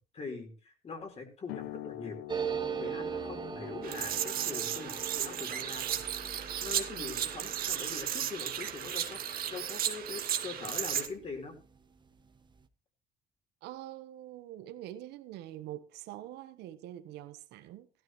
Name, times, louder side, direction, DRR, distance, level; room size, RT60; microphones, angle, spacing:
voice 1, 0.1-2.2 2.8-6.0 6.6-11.6, left 4 dB, 40° left, 4.2 m, -43 dB
sound 1, 1.5-8.6, left 16 dB, 90° left, 0.8 m, -48 dB
sound 2, 2.3-11.4 11.7-11.8 12.0-12.6, right 6 dB, 25° right, 1.1 m, -41 dB
sound 3, 3.8-11.1, right 10 dB, 60° right, 1.7 m, -34 dB
voice 2, 13.6-17.9, right 13 dB, 85° right, 1.2 m, -45 dB
16.0 x 12.5 x 3.1 m
cardioid pair, 110°, 17 cm